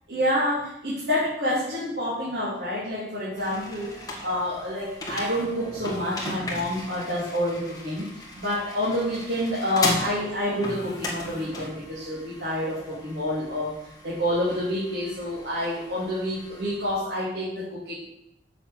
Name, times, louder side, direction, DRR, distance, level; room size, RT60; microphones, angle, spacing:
voice 1, 0.1-13.7 14.0-17.9, left 1 dB, 75° right, -8 dB, 2.9 m, -28 dB
sound 1, 3.4-17.0, left 1 dB, 20° left, 2.0 m, -37 dB
7.0 x 6.9 x 7.9 m, 0.84 s
head